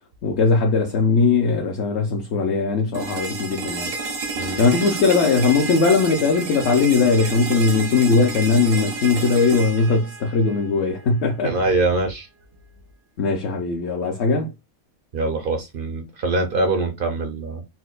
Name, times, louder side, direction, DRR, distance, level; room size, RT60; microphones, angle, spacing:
voice 1, 0.2-4.0 4.6-11.6 13.2-14.5, left 4 dB, 60° left, 0.8 m, -19 dB
sound 1, 2.9-10.9, right 3 dB, 90° right, 1.3 m, -30 dB
voice 2, 11.4-12.3 15.1-17.6, right 3 dB, 65° right, 0.5 m, -23 dB
4.2 x 2.1 x 2.4 m
omnidirectional pair, 1.5 m